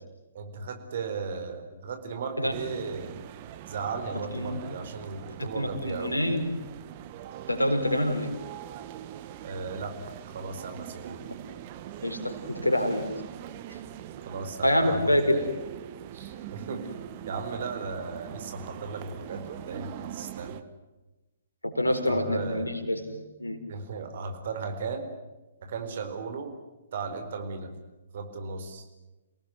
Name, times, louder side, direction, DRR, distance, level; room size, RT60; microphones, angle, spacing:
voice 1, 0.3-3.2 3.7-6.2 9.4-9.9 10.3-11.2 14.3-15.5 16.1-16.9 17.2-20.6 21.8-22.7 23.7-25.1 25.6-26.6 26.9-27.7 28.1-28.8, right 4 dB, 50° right, 7 dB, 4.5 m, -36 dB
sound 1, 2.5-20.6, right 11 dB, 35° right, 1.5 m, -42 dB
voice 2, 5.4-6.5 7.5-8.3 12.0-13.1 14.6-15.5 21.6-23.6, left 1 dB, 85° left, 5 dB, 4.6 m, -26 dB
29.0 x 18.5 x 9.5 m, 1.1 s
figure-of-eight pair, 125°, 0 cm